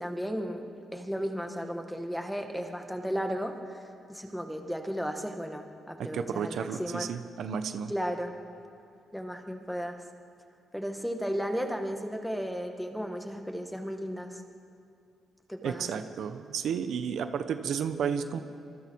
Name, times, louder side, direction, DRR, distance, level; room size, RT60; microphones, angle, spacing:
voice 1, 0.0-7.1 7.9-8.3 9.1-10.0 10.7-14.4 15.5-15.9, equal, ahead, 4 dB, 1.9 m, -34 dB
voice 2, 6.0-7.9 15.6-18.4, right 7 dB, 70° right, 9 dB, 1.1 m, -32 dB
26.5 x 23.0 x 4.8 m, 2.5 s
cardioid pair, 105°, 0 cm